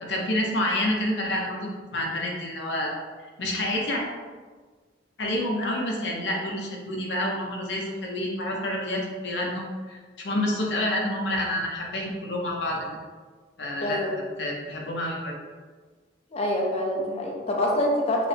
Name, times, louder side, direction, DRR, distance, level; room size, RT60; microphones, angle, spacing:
voice 1, 0.0-3.0 3.4-4.0 5.2-12.9 13.6-14.1 14.4-15.3, left 1 dB, 65° left, -1 dB, 0.8 m, -28 dB
voice 2, 13.8-14.1 16.3-18.3, left 1 dB, 35° left, -1 dB, 0.7 m, -25 dB
5.1 x 2.1 x 3.2 m, 1.5 s
head